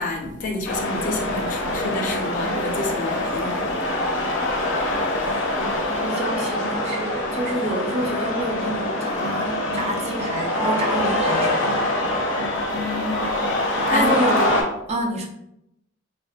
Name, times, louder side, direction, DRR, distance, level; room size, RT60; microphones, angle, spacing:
voice 1, 0.0-3.8 12.7-13.3 13.9-14.1, left 2 dB, 40° left, 0.4 m, -29 dB
sound 1, 0.6-14.6, left 1 dB, 90° left, 0.6 m, -24 dB
voice 2, 5.6-11.9 13.9-15.3, right 1 dB, 35° right, 0.4 m, -28 dB
2.8 x 2.1 x 2.3 m
head